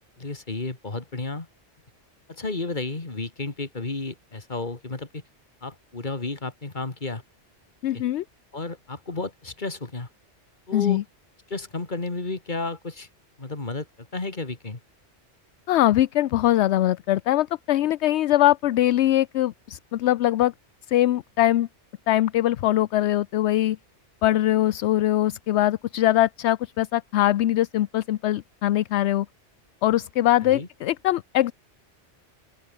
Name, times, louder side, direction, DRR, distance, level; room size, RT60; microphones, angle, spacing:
voice 1, 0.2-1.5 2.3-5.2 5.6-7.2 7.9-8.0 8.5-10.1 10.7-11.0 11.5-13.1 13.4-14.8 30.4-30.7, left 3 dB, 40° left, 2.5 m, -32 dB
voice 2, 7.8-8.2 10.7-11.0 15.7-20.5 20.9-21.7 22.1-23.8 24.2-29.3 29.8-31.5, left 14 dB, 75° left, 0.8 m, -22 dB
open air
omnidirectional pair, 1.2 m